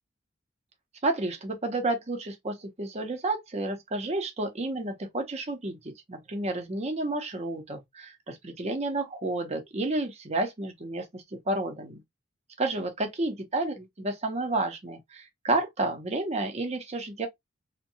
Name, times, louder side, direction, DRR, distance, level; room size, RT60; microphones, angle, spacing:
voice 1, 1.0-12.0 12.6-17.3, right 2 dB, 35° right, 0.7 m, -31 dB
2.7 x 2.2 x 2.6 m
head